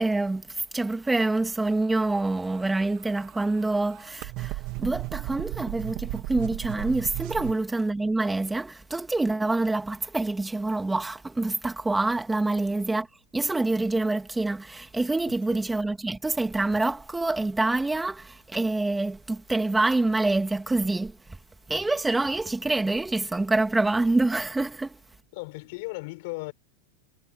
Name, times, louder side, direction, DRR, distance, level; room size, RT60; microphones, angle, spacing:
voice 1, 0.0-13.1 13.3-21.2 21.7-25.0, right 2 dB, 10° right, 2.2 m, -26 dB
sound 1, 2.4-7.5, right 21 dB, 50° right, 1.2 m, -35 dB
voice 2, 25.3-26.5, left 25 dB, 60° left, 6.8 m, -36 dB
hypercardioid pair, 125°, 0 cm